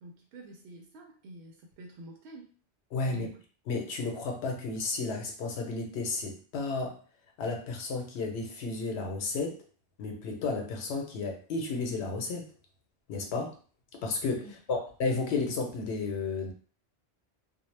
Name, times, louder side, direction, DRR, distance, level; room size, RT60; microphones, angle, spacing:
voice 1, 0.0-2.5 3.0-3.4 14.4-14.8, right 1 dB, 85° right, 1 dB, 0.8 m, -47 dB
voice 2, 2.9-3.3 3.7-7.0 7.4-9.6 10.0-12.5 13.1-13.5 14.0-14.4 14.7-16.5, left 3 dB, 90° left, 2 dB, 0.8 m, -32 dB
2.1 x 2.0 x 3.1 m, 0.40 s
omnidirectional pair, 1.1 m